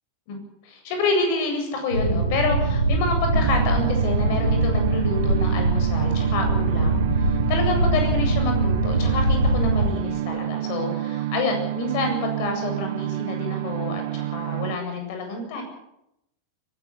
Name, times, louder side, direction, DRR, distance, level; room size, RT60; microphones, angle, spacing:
voice 1, 0.6-15.6, left 3 dB, 45° left, 4 dB, 7.9 m, -28 dB
Boat Water vehicle, 1.9-9.9, right 2 dB, 85° right, 3.5 m, -22 dB
sound 1, 3.3-14.8, right 13 dB, 50° right, 0.8 m, -29 dB
22.5 x 14.0 x 10.0 m, 0.83 s
figure-of-eight pair, 90°, 0 cm